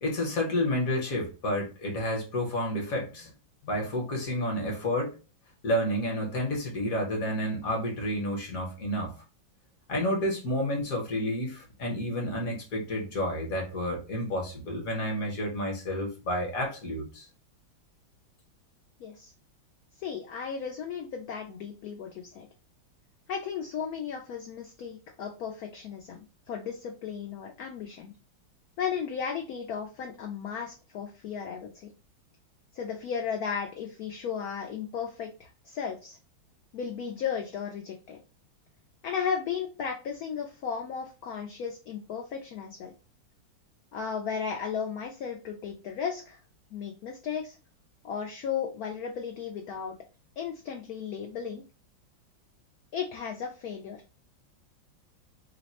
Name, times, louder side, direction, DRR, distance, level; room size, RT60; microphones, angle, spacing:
voice 1, 0.0-3.3 3.6-5.2 5.6-9.1 9.9-17.2, left 1 dB, 55° left, 0 dB, 1.1 m, -30 dB
voice 2, 19.0-19.3 20.0-22.5 23.3-28.1 28.8-31.9 32.7-36.2 36.7-38.2 39.0-42.9 43.9-46.4 46.7-47.6 48.0-50.0 50.4-51.6 52.9-54.0, left 7 dB, 85° left, 3 dB, 0.8 m, -35 dB
3.2 x 2.1 x 4.1 m, 0.33 s
omnidirectional pair, 2.1 m